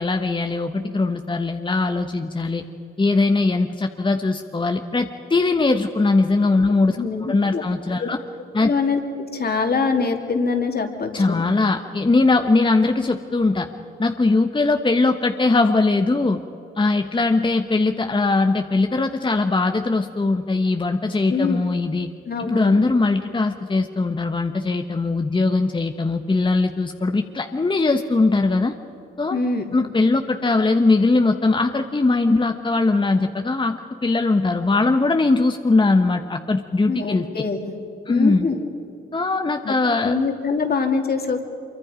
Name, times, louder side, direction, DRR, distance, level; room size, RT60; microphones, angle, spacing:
voice 1, 0.0-2.6 3.0-8.2 8.5-8.7 11.1-13.7 14.0-16.4 16.8-22.1 22.4-28.7 29.2-29.4 29.7-37.5 38.1-38.5 39.1-40.1, left 3 dB, 25° left, 6 dB, 1.1 m, -20 dB
voice 2, 7.0-7.6 8.0-8.1 8.7-9.0 9.3-11.4 21.3-21.6 22.3-22.8 29.3-29.6 36.9-37.6 38.1-38.6 39.6-41.4, left 4 dB, 50° left, 4 dB, 2.8 m, -24 dB
25.0 x 23.5 x 5.2 m, 2.9 s
cardioid pair, 65°, 21 cm